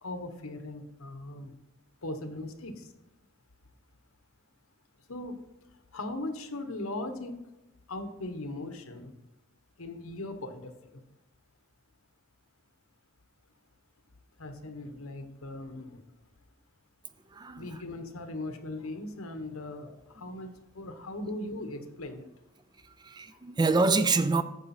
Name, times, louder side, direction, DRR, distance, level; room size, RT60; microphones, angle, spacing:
voice 1, 0.0-1.5 2.0-2.9 5.1-5.4 5.9-7.4 7.9-9.1 9.8-10.7 14.4-16.0 17.5-22.2 23.3-23.4, left 2 dB, 85° left, 1.1 m, -39 dB
voice 2, 17.3-17.8 21.3-21.4 22.8-24.4, right 3 dB, 20° right, 0.4 m, -26 dB
9.6 x 6.7 x 4.3 m
head